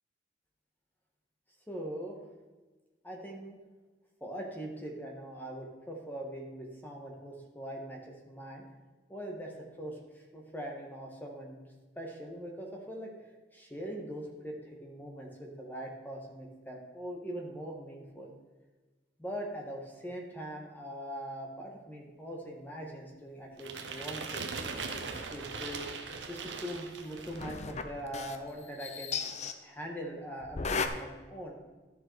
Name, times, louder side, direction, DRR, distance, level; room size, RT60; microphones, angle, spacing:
voice 1, 1.7-2.2 3.0-3.6 4.2-8.6 9.1-9.5 9.8-11.6 11.9-13.1 13.5-18.3 19.2-25.8 26.3-29.1 29.6-31.5, equal, 10° left, 0 dB, 1.6 m, -42 dB
sound 1, 23.6-27.6, right 4 dB, 80° right, 1.0 m, -40 dB
sound 2, 27.2-28.5 28.8-29.5 30.4-30.9, left 5 dB, 40° left, 0.6 m, -35 dB
12.0 x 6.8 x 4.7 m, 1.2 s
head